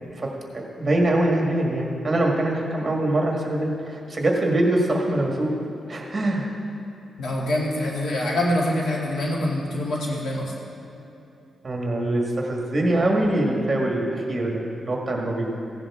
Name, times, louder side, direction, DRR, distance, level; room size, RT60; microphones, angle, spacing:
voice 1, 0.8-5.5 5.9-6.5 11.6-15.5, right 1 dB, 25° right, -1 dB, 1.8 m, -23 dB
voice 2, 7.2-10.5, left 1 dB, 80° left, -3 dB, 2.4 m, -25 dB
15.5 x 10.5 x 3.6 m, 2.9 s
wide cardioid pair, 130°, 0 cm